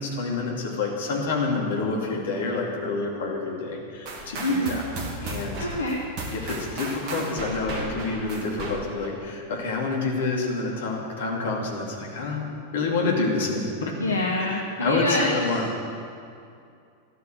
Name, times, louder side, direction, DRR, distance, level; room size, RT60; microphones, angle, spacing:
voice 1, 0.0-4.8 5.2-5.7 6.3-12.5 12.7-13.9 14.4-15.7, left 3 dB, 60° left, -1 dB, 2.6 m, -28 dB
sound 1, 4.1-9.2, right 2 dB, 40° right, 2.1 m, -35 dB
voice 2, 4.4-4.8 5.6-6.0 14.0-15.6, left 1 dB, 75° left, -1 dB, 1.3 m, -26 dB
13.5 x 12.0 x 6.6 m, 2.4 s
figure-of-eight pair, 90°, 0 cm